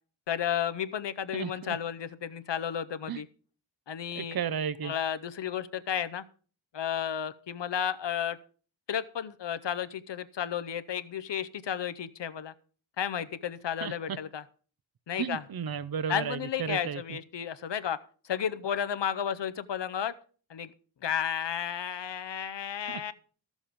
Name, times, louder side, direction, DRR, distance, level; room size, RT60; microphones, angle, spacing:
voice 1, 0.3-3.3 3.9-4.4 4.8-6.2 6.7-8.4 8.9-12.5 13.0-14.4 15.1-15.4 16.1-18.0 18.2-20.1 20.5-20.7 21.0-23.1, left 9 dB, 65° left, 0.7 m, -32 dB
voice 2, 1.3-1.8 3.1-3.2 4.2-4.9 13.8-14.2 15.2-17.2 22.9-23.0, right 7 dB, 50° right, 0.7 m, -34 dB
13.0 x 7.2 x 5.1 m
wide cardioid pair, 90°, 46 cm